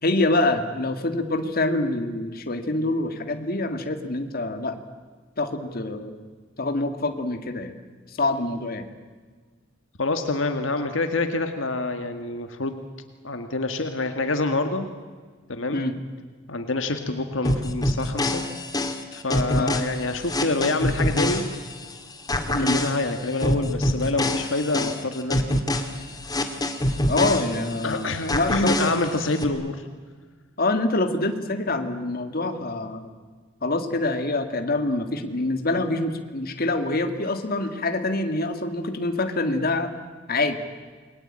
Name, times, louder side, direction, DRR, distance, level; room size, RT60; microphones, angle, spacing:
voice 1, 0.0-4.8 5.4-6.1 6.6-7.7 8.1-8.9 15.7-15.9 19.6-19.8 22.5-22.8 27.1-28.9 30.6-33.1 33.6-39.9 40.3-40.5, left 2 dB, 50° left, 7 dB, 2.2 m, -25 dB
voice 2, 10.0-12.8 13.2-14.9 15.5-15.8 16.5-18.4 19.1-21.5 22.6-25.6 27.8-29.8, left 2 dB, 70° left, 7 dB, 1.8 m, -26 dB
sound 1, 17.4-21.9 22.3-27.9 28.3-29.4, left 1 dB, 20° left, 2.2 m, -25 dB
29.0 x 22.0 x 8.9 m, 1.5 s
head